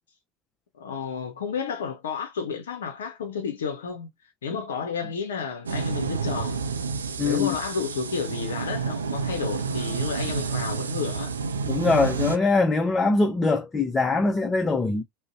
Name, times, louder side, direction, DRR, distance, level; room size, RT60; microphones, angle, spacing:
voice 1, 0.7-4.1 4.4-6.6 7.2-11.3, left 6 dB, 80° left, 0.5 m, -31 dB
sound 1, 5.7-12.4, right 5 dB, 90° right, 0.3 m, -29 dB
voice 2, 7.2-7.6 11.6-15.0, left 3 dB, 20° left, 0.4 m, -22 dB
2.6 x 2.0 x 2.4 m
hypercardioid pair, 85°, 0 cm